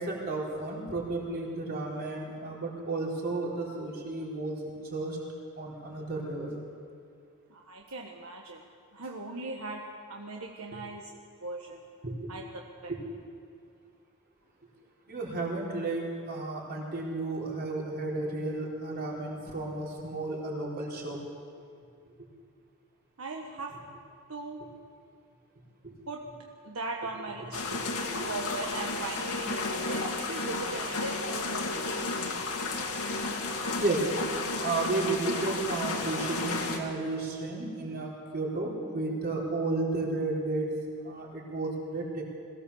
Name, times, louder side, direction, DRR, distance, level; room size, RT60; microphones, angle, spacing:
voice 1, 0.0-5.2 5.6-6.6 10.7-10.8 12.0-12.3 12.9-13.0 15.1-21.2 22.2-22.3 23.7-23.8 25.8-25.9 27.4-28.3 28.7-28.8 31.7-31.9 33.7-34.0 34.6-40.7 41.0-42.2, right 2 dB, 45° right, -3 dB, 4.3 m, -33 dB
voice 2, 7.5-8.6 8.9-9.8 10.1-11.0 11.4-11.8 12.3-12.4 12.8-12.9 23.2-23.7 24.3-24.6 26.1-26.2 26.6-27.6 28.3-32.1, right 3 dB, 75° right, 0 dB, 1.3 m, -38 dB
sound 1, 27.5-36.8, left 3 dB, 80° left, 2.2 m, -33 dB
22.0 x 16.5 x 7.1 m, 2.3 s
head